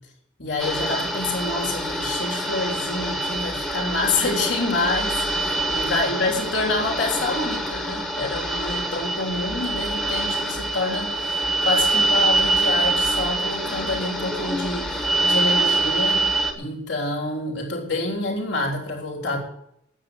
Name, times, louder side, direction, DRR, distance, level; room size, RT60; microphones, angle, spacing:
voice 1, 0.4-16.3 16.6-19.4, left 3 dB, 60° left, 0 dB, 3.6 m, -27 dB
sound 1, 0.6-16.5, right 2 dB, ahead, 1.6 m, -25 dB
9.5 x 8.5 x 9.6 m, 0.76 s
head